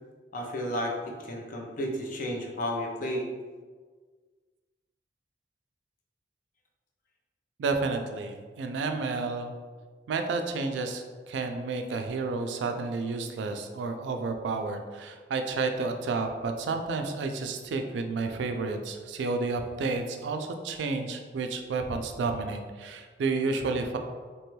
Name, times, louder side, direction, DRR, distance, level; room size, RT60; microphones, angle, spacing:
voice 1, 0.3-3.3, equal, 50° left, 0 dB, 0.5 m, -32 dB
voice 2, 7.6-9.5 10.1-24.0, right 3 dB, 85° right, 5 dB, 0.3 m, -31 dB
2.9 x 2.2 x 3.0 m, 1.5 s
head